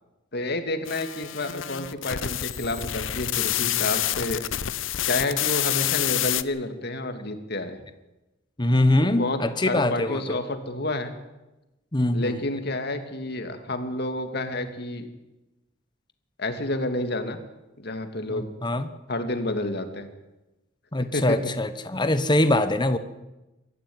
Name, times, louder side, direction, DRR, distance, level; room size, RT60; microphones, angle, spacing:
voice 1, 0.3-4.5 5.1-7.8 9.0-11.1 12.1-15.1 16.4-17.4 17.8-18.5 19.1-20.1 21.1-21.4, left 2 dB, 55° left, 7 dB, 2.4 m, -29 dB
sound 1, 0.9-6.4, left 12 dB, 80° left, 0.8 m, -28 dB
voice 2, 8.6-10.4 11.9-12.4 18.3-18.9 20.9-23.0, left 1 dB, 25° left, 10 dB, 1.2 m, -23 dB
23.5 x 14.0 x 9.5 m, 1.0 s
head